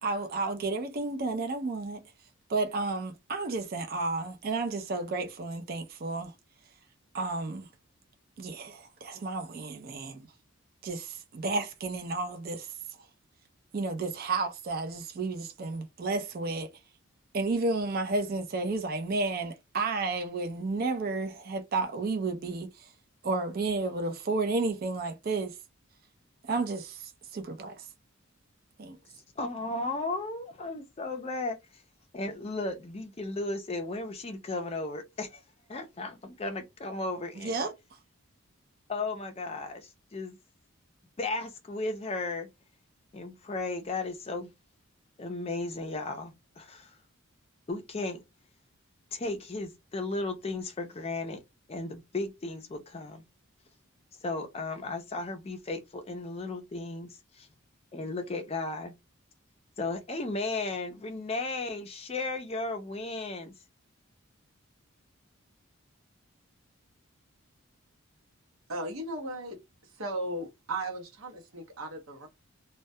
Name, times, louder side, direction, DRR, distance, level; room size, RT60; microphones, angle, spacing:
voice 1, 0.0-2.0 2.5-6.3 7.1-7.7 8.4-10.3 10.8-12.7 13.7-16.7 17.3-22.7 23.2-25.5 26.5-27.0 27.3-27.8 28.8-29.0 37.4-37.7, right 3 dB, 45° right, 0.4 m, -32 dB
voice 2, 29.1-31.8 32.1-35.4 35.7-37.6 38.9-40.4 41.2-42.5 43.1-44.5 45.2-47.0 47.7-48.2 49.1-51.4 51.7-53.2 54.2-57.5 57.9-58.9 59.8-63.5, left 2 dB, 30° left, 0.4 m, -35 dB
voice 3, 68.7-72.3, right 1 dB, 80° right, 0.8 m, -36 dB
2.2 x 2.2 x 2.6 m
head